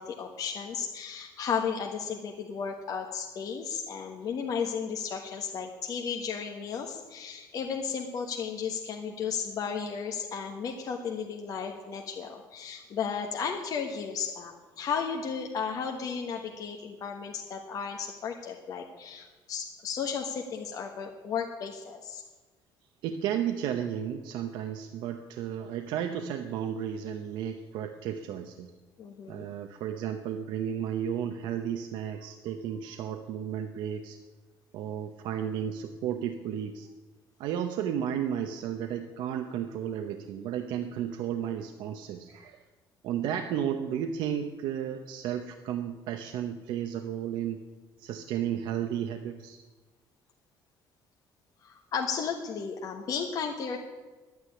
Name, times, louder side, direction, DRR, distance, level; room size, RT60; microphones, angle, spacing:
voice 1, 0.0-22.2 29.0-29.5 51.6-53.8, left 6 dB, 50° left, 2 dB, 1.4 m, -34 dB
voice 2, 23.0-28.7 29.3-34.2 34.7-36.9 37.4-42.6 43.0-47.6 48.0-49.6, right 9 dB, 80° right, 6 dB, 0.9 m, -33 dB
11.5 x 9.5 x 9.7 m, 1.3 s
cardioid pair, 145°, 8 cm